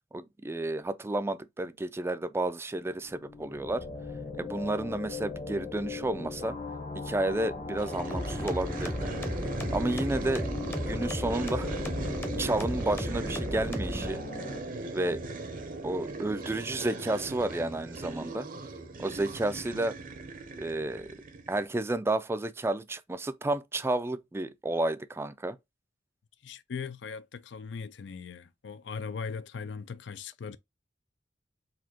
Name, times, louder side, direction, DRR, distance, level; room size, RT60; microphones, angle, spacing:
voice 1, 0.1-3.8 4.4-6.5 7.0-9.1 9.7-10.5 10.8-11.7 12.4-14.2 14.9-15.2 15.8-18.5 19.0-20.0 20.6-21.2 21.5-25.6, right 2 dB, 15° right, 0.3 m, -31 dB
sound 1, 3.0-14.6, left 3 dB, 40° left, 1.0 m, -39 dB
sound 2, 7.8-21.7, right 2 dB, 50° right, 0.7 m, -39 dB
sound 3, 8.1-14.1, equal, 15° left, 0.7 m, -35 dB
voice 2, 26.4-30.6, left 5 dB, 70° left, 0.4 m, -39 dB
4.1 x 2.7 x 2.8 m
head